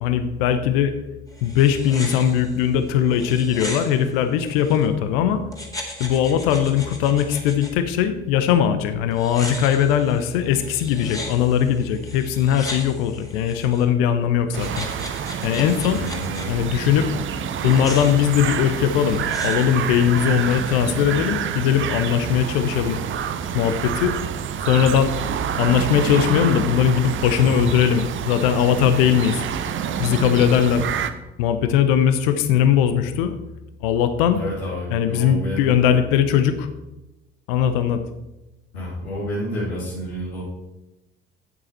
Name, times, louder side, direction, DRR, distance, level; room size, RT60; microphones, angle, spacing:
voice 1, 0.0-0.9 1.4-5.4 6.0-14.9 15.4-16.0 16.5-17.1 17.6-23.0 23.5-24.2 24.7-25.1 25.6-29.4 30.0-30.9 31.4-33.3 33.8-34.4 34.9-36.7 37.5-38.0, left 9 dB, 60° left, 10 dB, 0.9 m, -20 dB
sound 1, 1.3-4.9 5.5-7.7 9.1-13.8 14.5-16.5 17.5-20.8, left 1 dB, 10° left, 2.2 m, -37 dB
sound 2, 14.5-31.1, right 8 dB, 40° right, 0.8 m, -28 dB
voice 2, 15.8-16.5 27.4-27.7 34.3-35.7 38.7-40.4, equal, 80° left, -8 dB, 2.3 m, -29 dB
9.0 x 8.1 x 4.3 m, 0.99 s
figure-of-eight pair, 55°, 32 cm